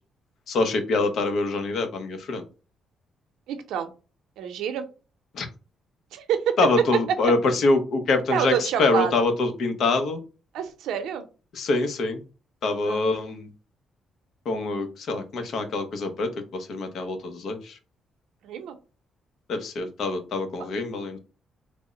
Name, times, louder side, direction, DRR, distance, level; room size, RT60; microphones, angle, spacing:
voice 1, 0.5-2.4 5.3-5.5 6.6-10.2 11.6-12.2 12.6-13.5 14.5-17.8 19.5-21.2, left 3 dB, 65° left, 7 dB, 0.8 m, -25 dB
voice 2, 3.5-3.9 4.4-4.8 6.1-6.5 7.2-7.3 8.3-9.2 10.5-11.2 12.8-13.1 18.4-18.7, right 9 dB, 85° right, 7 dB, 0.6 m, -28 dB
3.4 x 2.1 x 3.7 m, 0.33 s
cardioid pair, 90°, 0 cm